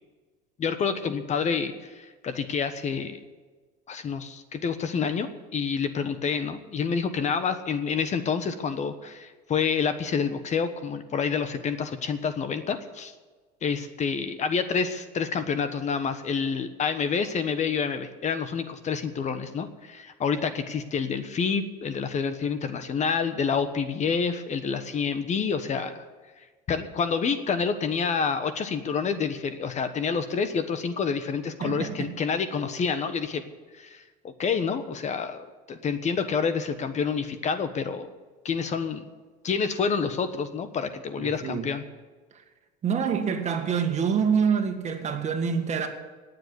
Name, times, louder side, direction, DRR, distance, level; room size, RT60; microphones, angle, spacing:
voice 1, 0.6-3.2 3.9-13.1 13.6-26.1 26.7-33.4 33.7-38.1 38.4-39.0 39.4-41.8, left 6 dB, 35° left, 1.1 m, -28 dB
voice 2, 31.6-32.1 41.2-41.7 42.8-45.9, right 6 dB, 35° right, 2.0 m, -26 dB
18.5 x 7.9 x 8.1 m
supercardioid pair, 120°, 20 cm